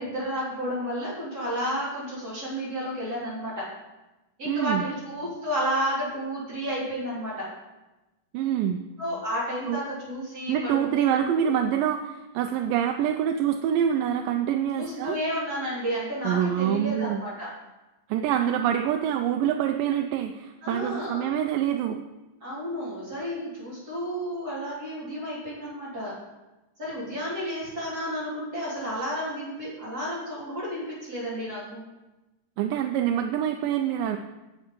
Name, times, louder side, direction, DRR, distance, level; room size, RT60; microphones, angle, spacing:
voice 1, 0.0-3.7 4.4-7.5 9.0-11.0 11.4-11.7 14.8-17.5 20.6-21.3 22.4-26.2 26.8-31.8, equal, 30° right, -8 dB, 3.3 m, -31 dB
voice 2, 4.5-4.8 8.3-8.8 9.7-9.8 10.5-15.2 16.2-17.2 18.1-22.0 32.6-34.2, right 9 dB, 85° right, 5 dB, 2.2 m, -25 dB
8.5 x 7.0 x 5.2 m, 1.1 s
omnidirectional pair, 4.0 m